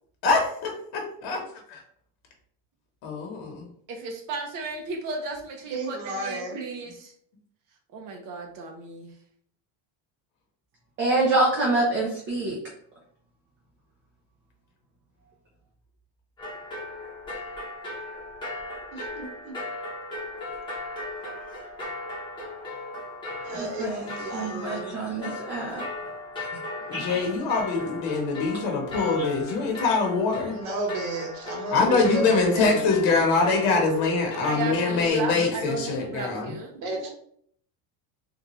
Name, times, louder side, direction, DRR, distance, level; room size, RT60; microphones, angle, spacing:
voice 1, 0.9-1.4 3.0-3.7 26.9-30.6 31.7-36.5, left 4 dB, 65° left, 2 dB, 1.0 m, -24 dB
voice 2, 3.9-7.1 7.9-9.1 34.4-36.8 37.0-37.1, right 4 dB, 45° right, 3 dB, 0.8 m, -35 dB
voice 3, 5.7-6.6 18.9-19.5 23.4-25.0 30.5-32.9 36.8-37.1, right 2 dB, 65° right, 0 dB, 1.4 m, -32 dB
voice 4, 11.0-12.6 23.5-25.8 26.9-27.2 29.2-29.3, right 2 dB, 25° right, -2 dB, 0.4 m, -26 dB
sound 1, 16.4-35.1, left 2 dB, 10° left, 0.7 m, -37 dB
3.7 x 2.3 x 3.0 m, 0.63 s
cardioid pair, 165°, 46 cm